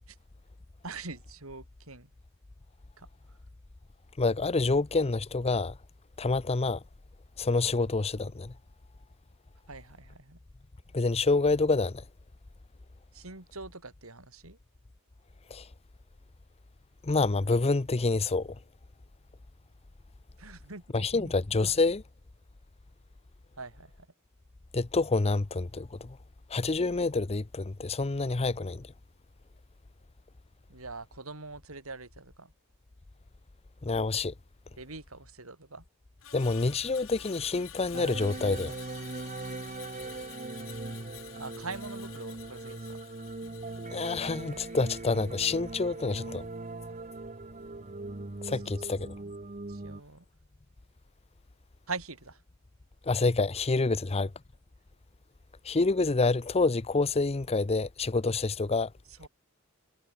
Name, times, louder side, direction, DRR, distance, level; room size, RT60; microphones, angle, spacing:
voice 1, 0.8-2.1 3.0-3.1 9.7-10.4 13.1-14.6 20.4-21.3 23.6-24.1 30.7-32.5 34.8-35.8 41.4-43.0 48.5-48.9 49.7-50.2 51.9-52.4 53.9-54.0 59.1-59.3, right 3 dB, 90° right, 4.2 m, -43 dB
voice 2, 4.2-5.8 6.2-6.8 7.4-8.5 10.9-12.0 15.5-15.7 17.0-18.6 20.9-22.0 24.7-26.2 26.5-28.9 33.8-34.3 36.3-38.7 43.9-46.5 48.4-49.1 53.1-54.3 55.6-58.9, left 3 dB, 30° left, 0.7 m, -27 dB
Screech, 36.2-46.6 46.9-47.2, left 10 dB, 70° left, 4.3 m, -50 dB
sound 1, 37.9-50.0, right 2 dB, 35° right, 1.1 m, -40 dB
head